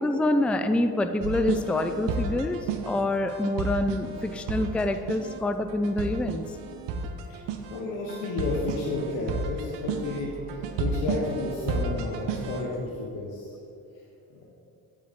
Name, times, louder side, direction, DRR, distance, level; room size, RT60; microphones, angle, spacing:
voice 1, 0.0-6.5, left 1 dB, 5° left, 8 dB, 0.4 m, -26 dB
sound 1, 1.2-12.7, right 4 dB, 90° right, 0.8 m, -33 dB
voice 2, 7.7-13.6 14.3-14.4, left 2 dB, 90° left, -5 dB, 1.3 m, -32 dB
9.4 x 8.3 x 3.7 m, 2.8 s
supercardioid pair, 60°, 42 cm